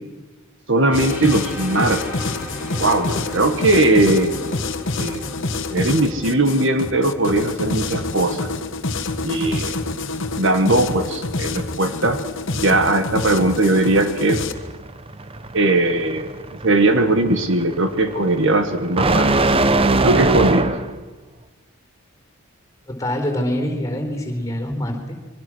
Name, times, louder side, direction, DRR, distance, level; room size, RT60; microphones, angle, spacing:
voice 1, 0.7-2.0 2.8-4.3 5.0-5.3 5.7-8.5 9.2-9.7 10.3-12.2 12.5-14.4 15.5-16.3 16.6-19.3 20.0-20.7, right 2 dB, 55° right, 8 dB, 1.7 m, -19 dB
sound 1, 0.9-14.5, left 3 dB, 55° left, 1.4 m, -27 dB
sound 2, 0.9-8.7, left 1 dB, 10° right, 4.5 m, -37 dB
sound 3, 14.6-21.0, right 2 dB, 25° right, 0.8 m, -21 dB
voice 2, 22.9-25.1, left 1 dB, 15° left, 4 dB, 4.1 m, -25 dB
26.5 x 23.5 x 6.4 m, 1.2 s
head